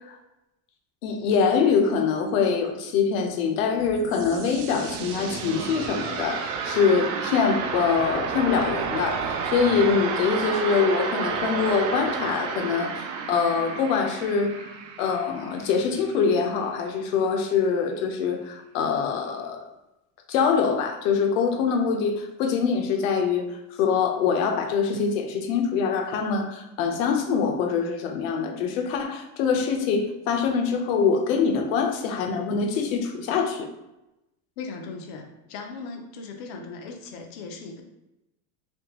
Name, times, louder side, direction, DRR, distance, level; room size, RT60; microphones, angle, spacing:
voice 1, 1.0-14.6 15.0-19.6 20.3-23.5 23.8-33.7, left 6 dB, 70° left, 4 dB, 0.8 m, -24 dB
sound 1, 3.8-16.5, right 6 dB, 65° right, 0.6 m, -31 dB
voice 2, 34.6-37.8, left 4 dB, 35° left, 3 dB, 0.4 m, -38 dB
3.5 x 3.0 x 2.9 m, 0.93 s
cardioid pair, 180°, 41 cm